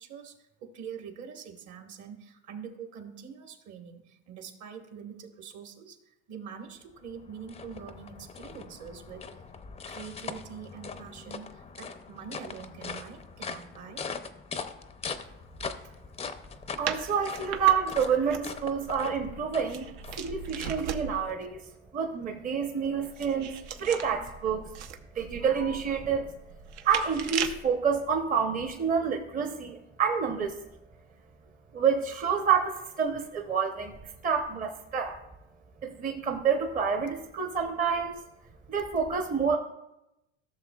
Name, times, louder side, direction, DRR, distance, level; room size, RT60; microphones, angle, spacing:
voice 1, 0.0-9.3 9.8-14.1, right 7 dB, 50° right, 4 dB, 1.6 m, -44 dB
sound 1, 6.8-21.3, left 5 dB, 15° left, 0.5 m, -42 dB
voice 2, 16.8-19.9 20.2-21.6 21.9-24.7 25.1-26.3 26.8-30.5 31.7-34.0 34.2-35.1 35.8-38.1 38.7-39.6, right 6 dB, 25° right, 3 dB, 0.8 m, -28 dB
sound 2, 16.8-21.3 22.8-27.7, right 8 dB, 70° right, 0.9 m, -38 dB
14.5 x 6.7 x 2.3 m, 0.90 s
supercardioid pair, 100°, 36 cm